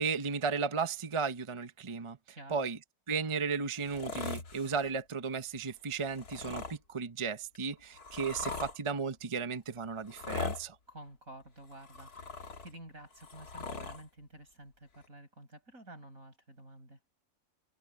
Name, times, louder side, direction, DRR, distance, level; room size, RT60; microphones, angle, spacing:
voice 1, 0.0-2.2 2.5-2.8 3.1-10.8, right 5 dB, 25° right, 0.7 m, -34 dB
voice 2, 2.3-2.7 10.9-17.0, right 1 dB, 60° right, 8.7 m, -51 dB
sound 1, 3.8-4.9 6.0-6.8 7.5-8.8 10.0-10.6 11.6-12.7 13.1-14.0 15.0-15.1, left 4 dB, 75° left, 2.6 m, -40 dB
omnidirectional pair, 1.6 m